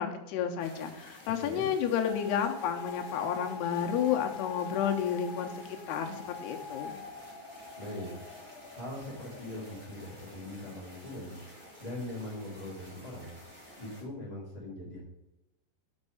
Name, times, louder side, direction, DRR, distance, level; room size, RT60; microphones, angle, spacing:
voice 1, 0.0-7.0, left 8 dB, 75° left, 4 dB, 2.8 m, -31 dB
sound 1, 0.6-14.0, equal, 30° right, 2.2 m, -52 dB
sound 2, 2.1-12.1, left 5 dB, ahead, 2.2 m, -45 dB
voice 2, 7.8-8.1 8.7-11.4 11.8-13.4 13.8-15.0, left 1 dB, 15° left, -8 dB, 1.3 m, -41 dB
6.6 x 5.3 x 6.4 m, 0.93 s
omnidirectional pair, 4.9 m